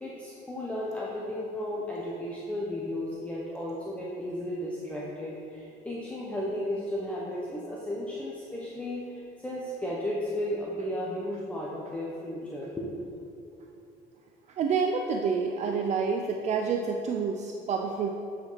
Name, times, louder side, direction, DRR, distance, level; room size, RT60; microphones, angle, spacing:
voice 1, 0.0-13.0, left 1 dB, 10° left, -5 dB, 1.1 m, -34 dB
voice 2, 14.6-18.1, right 5 dB, 50° right, 3 dB, 0.6 m, -28 dB
9.3 x 4.9 x 5.7 m, 2.6 s
cardioid pair, 125°, 15 cm